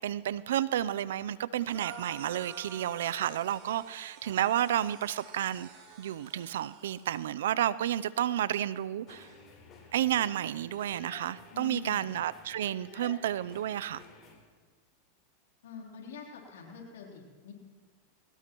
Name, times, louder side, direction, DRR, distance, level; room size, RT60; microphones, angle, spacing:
voice 1, 0.0-5.7 6.0-9.3 9.9-14.0, right 11 dB, 80° right, 18 dB, 0.4 m, -31 dB
sound 1, 1.6-7.2, right 5 dB, 50° right, 3.6 m, -49 dB
sound 2, 9.1-14.3, left 3 dB, 35° left, 3.7 m, -52 dB
voice 2, 11.5-12.1 15.6-17.5, left 6 dB, 85° left, -1 dB, 3.4 m, -45 dB
22.0 x 18.0 x 3.0 m, 1.5 s
supercardioid pair, 120°, 0 cm